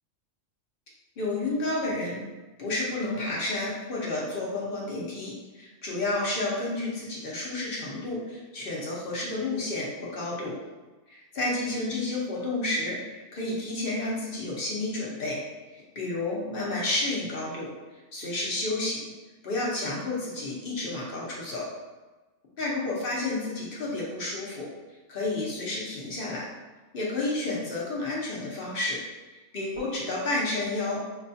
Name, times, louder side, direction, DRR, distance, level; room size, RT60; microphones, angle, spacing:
voice 1, 1.2-2.2 2.6-10.6 11.3-15.4 15.7-17.7 18.1-19.0 19.4-21.7 22.6-24.7 25.1-26.5 26.9-29.0 29.5-31.0, left 2 dB, 50° left, -4 dB, 0.9 m, -30 dB
4.9 x 2.3 x 2.7 m, 1.2 s
omnidirectional pair, 1.3 m